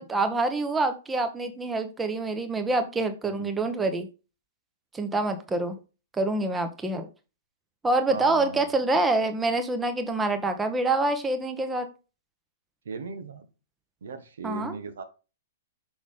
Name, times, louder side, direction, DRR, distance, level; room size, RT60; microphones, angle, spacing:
voice 1, 0.0-4.1 4.9-5.8 6.2-7.1 7.8-11.9 14.4-14.7, right 2 dB, 10° right, 7 dB, 1.0 m, -26 dB
voice 2, 3.3-3.7 8.1-8.9 12.8-13.5 14.0-15.0, right 4 dB, 60° right, 8 dB, 1.2 m, -38 dB
6.2 x 6.0 x 3.6 m, 0.31 s
figure-of-eight pair, 110°, 0 cm